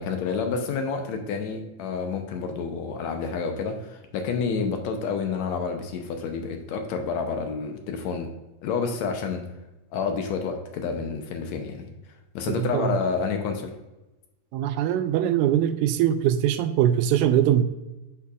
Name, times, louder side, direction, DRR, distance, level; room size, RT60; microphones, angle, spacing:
voice 1, 0.0-8.3 8.6-9.4 9.9-11.9 12.4-13.7, left 5 dB, 75° left, 1.9 m, -29 dB
voice 2, 12.5-13.0 14.5-17.6, right 11 dB, 85° right, 2.0 m, -22 dB
9.8 x 5.7 x 2.4 m
omnidirectional pair, 3.5 m